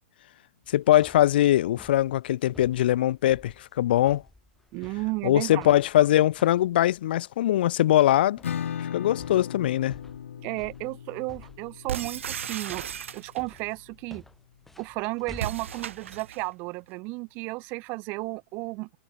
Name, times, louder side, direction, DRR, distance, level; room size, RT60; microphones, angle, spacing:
sound 1, 0.6-16.2, left 2 dB, 5° left, 4.4 m, -52 dB
voice 1, 0.7-4.2 5.2-8.4 8.8-10.0, left 13 dB, 50° left, 1.7 m, -22 dB
voice 2, 4.7-5.7 10.4-14.2 14.8-19.0, right 27 dB, 25° right, 2.7 m, -33 dB
Acoustic guitar / Strum, 8.4-13.9, left 9 dB, 85° left, 5.0 m, -38 dB
sound 2, 11.9-13.6 15.3-16.5, right 9 dB, 80° right, 3.9 m, -35 dB
hypercardioid pair, 170°, 7 cm